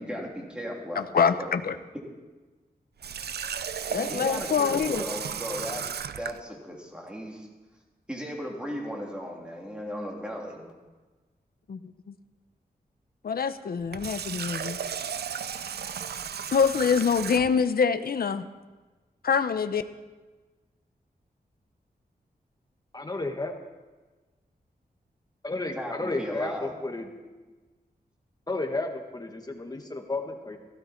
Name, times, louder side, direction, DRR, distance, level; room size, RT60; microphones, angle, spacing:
voice 1, 0.0-1.5 4.0-7.5 8.1-10.7 25.7-26.8, equal, 5° right, -2 dB, 3.2 m, -36 dB
voice 2, 1.0-1.8 3.9-5.0 11.7-11.8 12.1-12.2 13.2-14.8 16.5-18.4 19.2-19.8, left 6 dB, 65° left, 10 dB, 0.7 m, -25 dB
Water tap faucet, 3.0-6.4 13.8-17.6, right 7 dB, 80° right, 0.5 m, -35 dB
voice 3, 22.9-23.5 25.4-27.1 28.5-30.6, left 2 dB, 25° left, 3 dB, 1.7 m, -32 dB
16.5 x 15.0 x 4.5 m, 1.3 s
wide cardioid pair, 130°, 16 cm